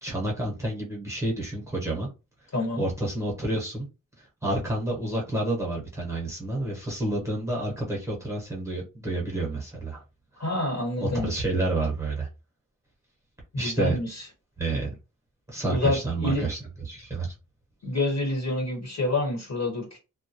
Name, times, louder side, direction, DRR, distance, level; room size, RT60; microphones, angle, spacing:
voice 1, 0.0-2.1 2.8-3.9 4.2-10.0 11.0-12.3 13.6-14.0 14.6-14.9 15.5-16.6 16.8-17.3, right 2 dB, 10° right, 1.0 m, -29 dB
voice 2, 2.5-2.8 10.4-11.3 13.5-14.2 15.7-16.4 17.8-20.0, left 2 dB, 50° left, 1.4 m, -27 dB
2.2 x 2.2 x 2.8 m
wide cardioid pair, 110°, 33 cm